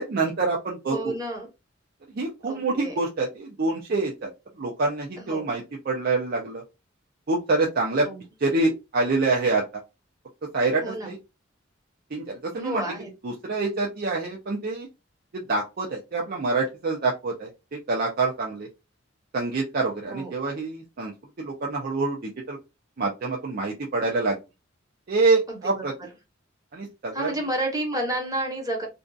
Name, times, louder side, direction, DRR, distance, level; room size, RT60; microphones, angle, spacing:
voice 1, 0.0-1.0 2.2-4.3 4.6-6.6 7.3-8.1 8.4-9.6 10.5-11.2 12.1-12.8 13.2-14.9 15.3-17.5 17.9-18.7 19.3-21.1 21.4-22.6 23.0-24.4 25.1-25.9 26.7-27.3, right 3 dB, 50° right, -1 dB, 0.5 m, -26 dB
voice 2, 0.9-1.5 2.5-2.9 5.2-5.5 8.0-8.2 10.8-11.2 12.5-13.1 20.1-20.3 25.5-25.8 27.1-28.9, right 1 dB, 20° right, 2 dB, 0.9 m, -30 dB
2.6 x 2.4 x 2.3 m, 0.25 s
head